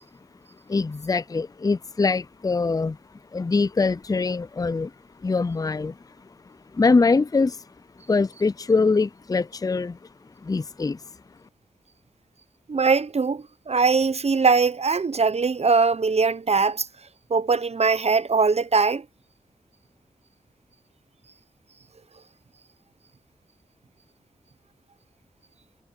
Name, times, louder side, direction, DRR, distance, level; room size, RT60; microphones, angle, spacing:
voice 1, 0.7-3.0 3.3-4.9 5.2-6.0 6.7-7.6 8.1-10.0 10.4-11.0, left 4 dB, 25° left, 0.5 m, -23 dB
voice 2, 12.7-16.9 17.3-19.0, right 4 dB, 50° right, 0.9 m, -21 dB
cardioid pair, 40°, 14 cm